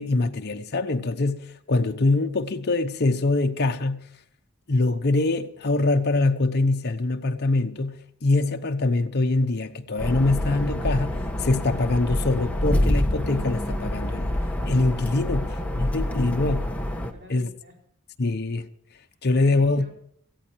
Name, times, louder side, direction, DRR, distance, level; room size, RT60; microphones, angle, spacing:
voice 1, 0.0-4.0 4.7-7.9 8.2-14.4 14.6-16.7 17.3-17.5 18.2-18.7 19.2-19.8, left 2 dB, 50° left, 0.9 m, -24 dB
sound 1, 10.0-17.1, left 1 dB, 5° left, 1.2 m, -27 dB
voice 2, 17.0-17.8 19.3-19.9, left 1 dB, 55° right, 4.7 m, -48 dB
18.0 x 14.5 x 4.6 m
head